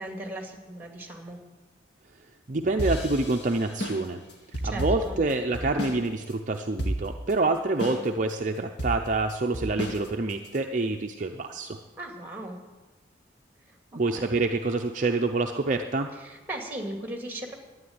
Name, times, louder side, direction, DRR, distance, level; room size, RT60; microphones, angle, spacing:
voice 1, 0.0-1.4 4.6-5.2 12.0-12.6 13.7-13.8 14.1-14.3 16.2-17.5, right 1 dB, 10° right, 2 dB, 2.2 m, -37 dB
voice 2, 2.5-4.2 4.6-11.8 13.9-16.1, right 3 dB, 40° right, 4 dB, 0.6 m, -27 dB
sound 1, 2.8-6.0 6.3-6.4 6.8-7.3 7.8-8.3 8.8-10.6, right 1 dB, 65° left, 2.1 m, -32 dB
11.5 x 9.6 x 9.4 m, 1.2 s
head